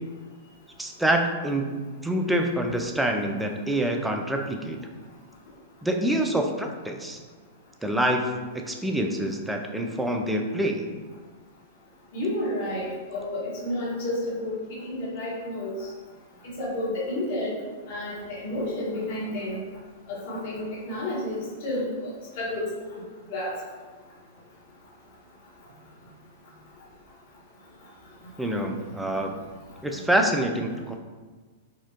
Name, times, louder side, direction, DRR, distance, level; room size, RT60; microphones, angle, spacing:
voice 1, 0.8-4.8 5.8-7.2 7.8-8.2 8.7-10.9 28.4-29.4 29.8-30.9, right 1 dB, 5° right, 3 dB, 0.4 m, -26 dB
voice 2, 12.1-14.6 14.8-15.9 16.6-17.6 17.9-19.6 20.1-22.6 22.9-23.0 23.3-23.5, left 1 dB, 50° left, -6 dB, 1.2 m, -31 dB
4.2 x 2.4 x 2.6 m, 1.4 s
figure-of-eight pair, 100°, 0 cm